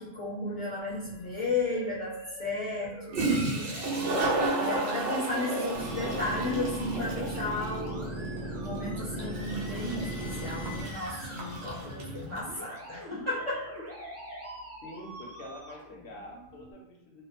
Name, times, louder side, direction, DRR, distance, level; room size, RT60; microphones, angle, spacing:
voice 1, 0.0-2.1 2.4-13.6, left 2 dB, 30° left, -10 dB, 0.8 m, -34 dB
Musical instrument, 0.8-16.7, right 1 dB, 25° right, 0.3 m, -46 dB
Toilet flush, 1.1-1.2 2.8-2.9 3.1-12.5, right 2 dB, 85° right, 0.9 m, -32 dB
sound 1, 5.7-10.8, right 1 dB, 60° right, 0.7 m, -36 dB
voice 2, 14.8-17.2, left 1 dB, 65° left, -1 dB, 0.7 m, -46 dB
2.2 x 2.1 x 2.8 m, 0.88 s
omnidirectional pair, 1.1 m